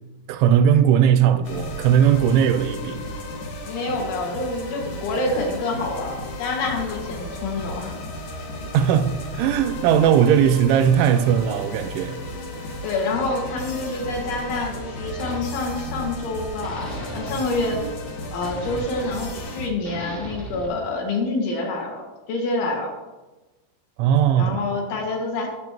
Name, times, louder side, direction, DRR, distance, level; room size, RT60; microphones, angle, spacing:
voice 1, 0.3-3.0 8.7-12.2 24.0-24.6, right 9 dB, 85° right, 2.9 m, -18 dB
sound 1, 1.4-19.7, left 1 dB, 60° left, 2.2 m, -34 dB
voice 2, 3.7-7.9 12.8-17.9 18.3-22.9 24.4-25.5, left 2 dB, 75° left, 4.2 m, -27 dB
sound 2, 12.7-16.3 16.6-20.7, right 1 dB, 30° left, 1.0 m, -39 dB
18.0 x 6.6 x 3.0 m
omnidirectional pair, 5.5 m